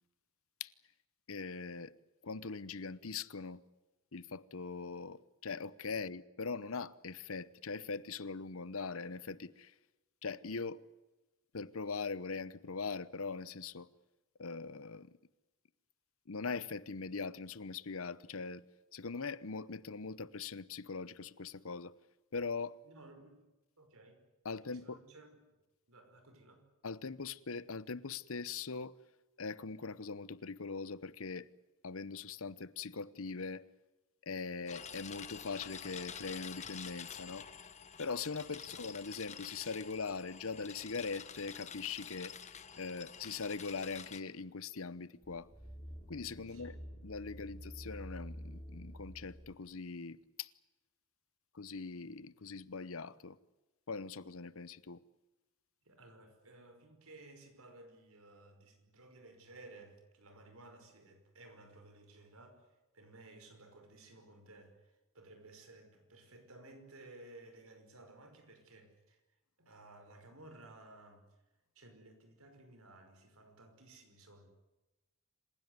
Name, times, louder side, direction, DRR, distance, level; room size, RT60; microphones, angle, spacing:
voice 1, 1.3-1.9 2.2-3.6 4.1-9.7 10.2-10.8 11.5-13.9 14.4-15.1 16.3-18.6 18.9-21.9 22.3-22.8 24.4-25.0 26.8-28.9 29.4-31.5 31.8-33.6 34.2-37.5 38.0-42.4 42.8-45.5 46.1-50.5 51.5-53.4 53.9-55.0, left 4 dB, 70° left, 0.9 m, -41 dB
voice 2, 22.8-23.4 23.8-24.2 24.5-25.4 25.9-26.7 38.6-38.8 46.5-46.8 55.8-71.4 71.8-74.5, right 2 dB, 75° right, 5.4 m, -57 dB
sound 1, 34.7-44.2, left 7 dB, 30° left, 1.2 m, -48 dB
sound 2, 45.2-49.6 50.1-50.2, equal, 10° left, 6.1 m, -49 dB
27.0 x 16.0 x 9.6 m
head